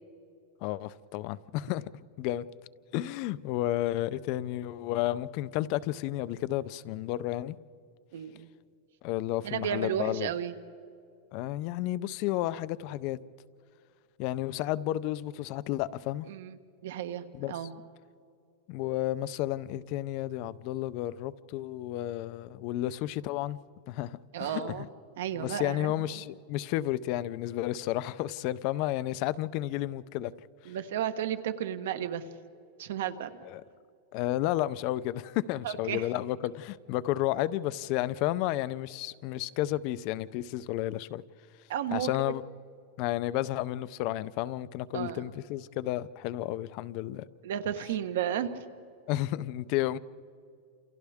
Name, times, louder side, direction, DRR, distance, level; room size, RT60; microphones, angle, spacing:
voice 1, 0.6-1.8 2.2-2.5 2.9-7.6 9.0-10.3 11.3-13.2 14.2-16.3 17.3-17.5 18.7-23.6 23.9-24.9 25.4-30.3 33.5-33.6 34.1-41.2 41.9-42.4 43.0-47.2 49.1-50.0, left 14 dB, 35° left, 0.5 m, -32 dB
voice 2, 8.1-8.5 9.4-10.5 16.3-17.7 24.3-24.9 25.2-26.1 30.6-32.2 32.8-33.5 35.6-36.1 41.7-42.3 44.9-45.3 47.4-48.5, right 10 dB, 65° right, 1.3 m, -33 dB
29.0 x 28.5 x 3.6 m
supercardioid pair, 180°, 0 cm